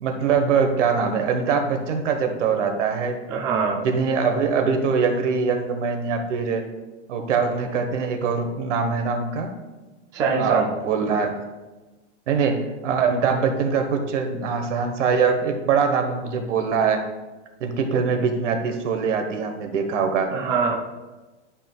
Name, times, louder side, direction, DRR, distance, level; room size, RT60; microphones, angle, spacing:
voice 1, 0.0-3.2 3.8-6.6 7.1-9.5 10.3-11.3 12.3-17.0 17.6-20.3, right 5 dB, 80° right, 5 dB, 1.3 m, -23 dB
voice 2, 3.3-3.8 10.1-10.7 20.3-20.7, right 5 dB, 10° right, -1 dB, 0.3 m, -23 dB
11.5 x 5.8 x 2.3 m, 1.2 s
supercardioid pair, 160°, 36 cm